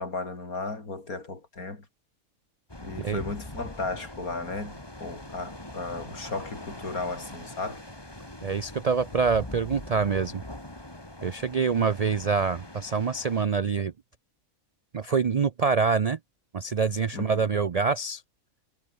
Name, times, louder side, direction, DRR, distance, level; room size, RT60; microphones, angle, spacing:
voice 1, 0.0-1.8 2.8-7.8 17.1-17.4, left 3 dB, 90° left, 4.6 m, -35 dB
sound 1, 2.7-13.5, left 1 dB, 15° left, 3.2 m, -42 dB
voice 2, 8.4-10.4 11.2-13.9 14.9-16.2 16.5-18.2, right 5 dB, 65° right, 0.3 m, -25 dB
omnidirectional pair, 1.5 m